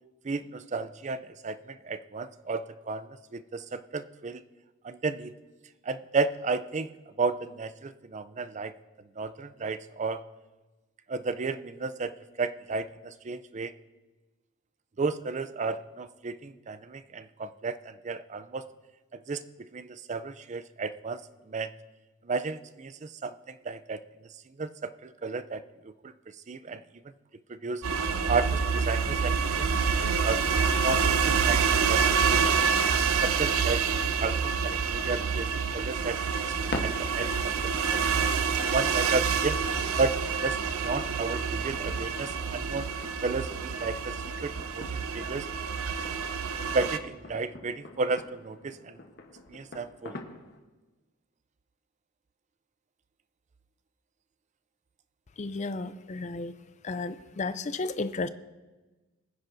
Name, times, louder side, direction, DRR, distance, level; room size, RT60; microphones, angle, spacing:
voice 1, 0.2-4.4 4.8-5.3 5.8-6.9 7.2-8.7 9.2-10.2 11.1-12.1 12.4-13.7 15.0-18.7 19.3-21.2 21.5-21.7 22.2-24.0 24.6-26.1 26.5-26.8 27.5-27.8 28.3-30.4 30.8-32.4 33.2-33.9 34.2-36.5 36.8-38.3 38.7-39.6 40.0-42.9 43.2-44.9 45.1-45.5 46.6-49.0 49.5-50.2, right 4 dB, 35° right, 13 dB, 0.4 m, -33 dB
sound 1, 27.8-47.0, right 6 dB, 75° right, 0.6 m, -27 dB
sound 2, 35.6-50.6, left 2 dB, 50° left, 1.1 m, -45 dB
voice 2, 55.4-56.5 56.8-58.3, left 3 dB, 35° left, 12 dB, 0.5 m, -33 dB
22.5 x 9.8 x 2.7 m, 1.2 s
head